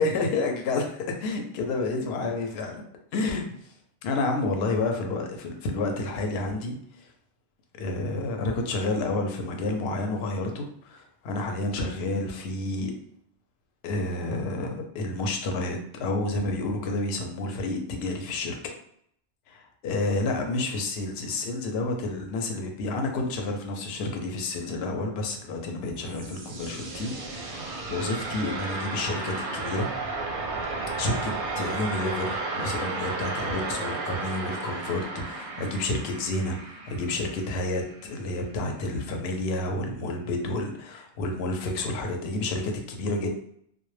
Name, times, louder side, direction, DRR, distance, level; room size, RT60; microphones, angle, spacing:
voice 1, 0.0-2.8 3.1-3.4 4.0-7.1 7.8-12.9 13.8-18.6 19.5-29.9 31.0-43.3, left 2 dB, 70° left, 3 dB, 0.8 m, -30 dB
sound 1, 25.8-38.5, right 3 dB, 60° right, 0.7 m, -34 dB
2.1 x 2.1 x 3.1 m, 0.69 s
omnidirectional pair, 1.2 m